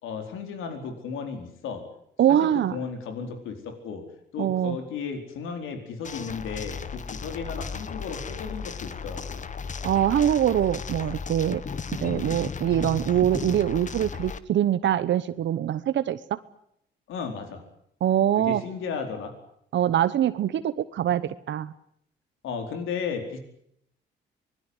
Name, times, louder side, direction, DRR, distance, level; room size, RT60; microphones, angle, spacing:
voice 1, 0.0-1.8 2.3-4.0 4.3-9.4 17.1-17.6 18.4-19.3 22.4-23.4, left 6 dB, 85° left, 6 dB, 4.6 m, -34 dB
voice 2, 2.2-2.8 4.4-4.8 9.8-11.6 12.0-16.4 18.0-18.6 19.7-21.7, right 11 dB, 65° right, 13 dB, 1.1 m, -24 dB
sound 1, 6.0-14.4, left 5 dB, 40° left, 1.4 m, -35 dB
25.0 x 20.5 x 8.1 m, 0.72 s
cardioid pair, 90°, 20 cm